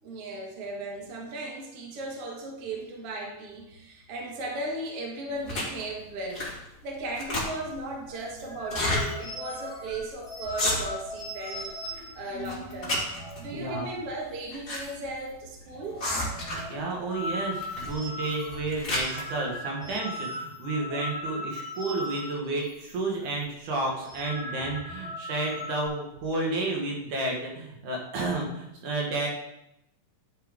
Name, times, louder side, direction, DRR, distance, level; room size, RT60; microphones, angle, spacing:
voice 1, 0.0-13.0 13.4-16.0, right 2 dB, 50° right, -1 dB, 2.2 m, -36 dB
sound 1, 5.5-5.8 6.3-6.7 7.0-7.8 8.6-9.0 9.5-9.6 9.9-10.1 10.4-11.1 11.5-12.0 12.4-13.4 14.2-14.8 15.1-15.2 16.0-16.8 17.6-17.9 18.4-19.2, left 1 dB, 25° left, 2.5 m, -30 dB
sound 2, 8.1-14.0 14.3-14.5 14.7-15.3 15.6-22.9 23.2-23.4 23.9-25.9, left 1 dB, 10° left, 1.6 m, -39 dB
voice 2, 13.5-13.9 16.7-29.3, right 2 dB, 70° right, -1 dB, 2.8 m, -31 dB
11.0 x 5.7 x 3.6 m, 0.85 s
omnidirectional pair, 3.8 m